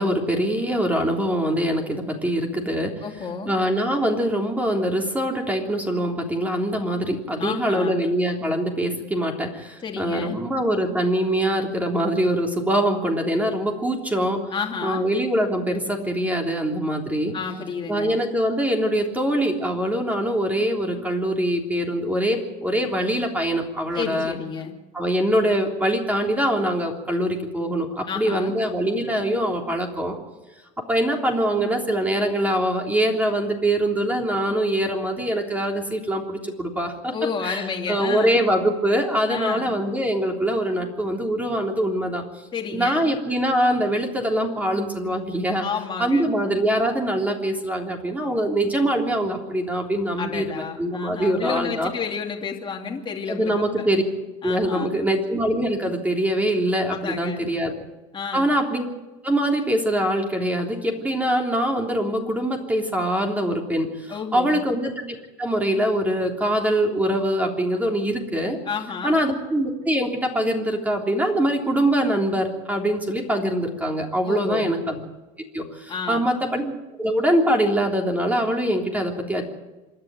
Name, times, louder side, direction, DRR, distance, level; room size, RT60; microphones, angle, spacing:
voice 1, 0.0-2.9 3.4-14.4 14.8-17.3 17.9-24.3 24.9-30.2 30.9-37.1 37.4-42.2 42.7-45.6 46.0-51.9 53.3-54.0 54.4-57.7 58.3-58.9 59.2-64.9 65.4-68.6 69.0-75.0 75.5-76.7 77.0-79.4, right 1 dB, 10° right, 2 dB, 3.4 m, -23 dB
voice 2, 3.0-3.5 7.4-8.0 9.8-10.4 14.5-15.1 17.3-18.1 23.9-24.8 28.1-28.5 37.1-38.4 39.3-39.7 42.5-43.1 45.6-46.3 50.2-53.9 54.4-55.0 56.9-57.5 58.1-58.5 64.1-64.6 68.7-69.2 74.2-74.7 75.9-76.3, left 6 dB, 25° left, 1 dB, 2.9 m, -31 dB
26.5 x 11.0 x 9.2 m, 1.1 s
supercardioid pair, 125°, 18 cm